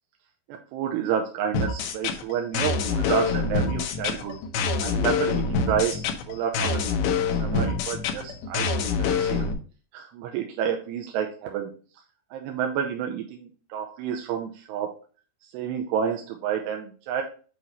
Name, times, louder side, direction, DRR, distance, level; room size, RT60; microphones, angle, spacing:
voice 1, 0.5-4.4 4.8-7.1 7.4-8.7 9.0-9.5 9.9-11.7 12.3-14.9 15.5-17.2, right 8 dB, 80° right, 3 dB, 2.6 m, -29 dB
sound 1, 1.5-9.5, left 5 dB, 85° left, 2.1 m, -26 dB
8.3 x 3.0 x 4.1 m, 0.38 s
omnidirectional pair, 5.3 m